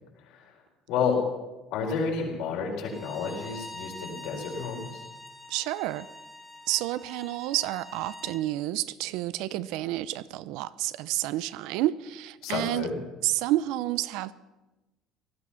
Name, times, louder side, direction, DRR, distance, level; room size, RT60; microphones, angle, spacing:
voice 1, 1.7-5.0 12.4-13.0, left 5 dB, 75° left, 0 dB, 4.6 m, -30 dB
Bowed string instrument, 2.9-8.4, left 1 dB, 5° left, 1.3 m, -45 dB
voice 2, 5.5-6.1 6.7-12.9 13.2-14.3, right 15 dB, 75° right, 17 dB, 0.6 m, -30 dB
18.0 x 12.5 x 5.8 m, 1.1 s
cardioid pair, 130°, 0 cm